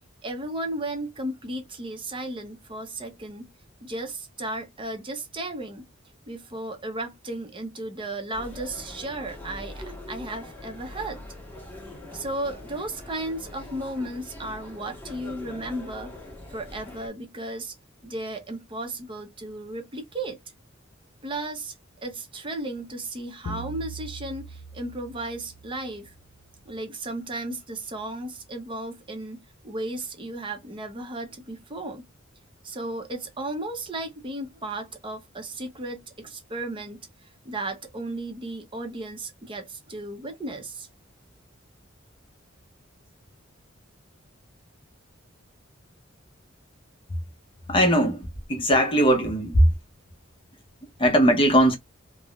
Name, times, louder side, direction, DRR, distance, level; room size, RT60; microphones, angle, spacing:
voice 1, 0.2-3.5 3.8-5.9 6.3-11.2 12.1-16.1 16.5-17.7 18.0-20.4 21.2-21.7 22.0-26.1 26.6-32.1 32.6-40.9, right 1 dB, 25° right, 0.6 m, -34 dB
sound 1, 8.3-17.1, left 1 dB, 10° left, 1.1 m, -42 dB
sound 2, 23.5-26.2, right 2 dB, 80° left, 0.5 m, -40 dB
voice 2, 47.7-49.7 51.0-51.8, equal, 25° left, 0.7 m, -19 dB
3.4 x 2.1 x 2.3 m
head